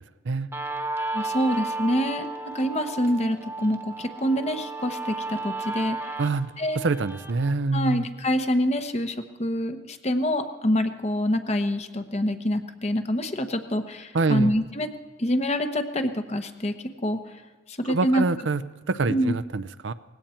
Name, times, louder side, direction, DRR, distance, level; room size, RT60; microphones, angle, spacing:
Guitar, 0.5-7.5, right 3 dB, 10° right, 1.2 m, -33 dB
voice 1, 1.1-2.3 2.5-6.1 6.6-6.8 7.7-14.9 15.2-16.7 17.0-17.2 17.7-18.3 19.1-19.4, equal, 35° left, 8 dB, 1.0 m, -26 dB
voice 2, 6.2-8.0 14.1-14.5 17.9-19.9, right 3 dB, 75° right, 14 dB, 0.6 m, -26 dB
19.5 x 16.5 x 4.4 m, 1.3 s
head